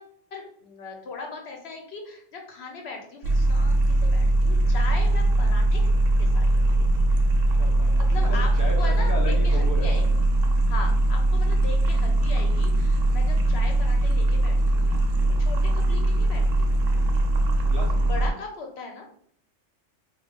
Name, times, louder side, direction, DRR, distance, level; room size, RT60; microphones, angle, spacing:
voice 1, 0.0-5.8 6.2-7.0 8.0-10.0 10.7-16.8 18.0-19.0, left 4 dB, 65° left, 2 dB, 0.9 m, -39 dB
sound 1, 3.2-18.3, right 1 dB, 85° right, 1.0 m, -21 dB
voice 2, 7.6-10.1 17.6-18.1, right 1 dB, 30° right, -4 dB, 0.3 m, -34 dB
2.9 x 2.4 x 3.5 m, 0.64 s
omnidirectional pair, 1.3 m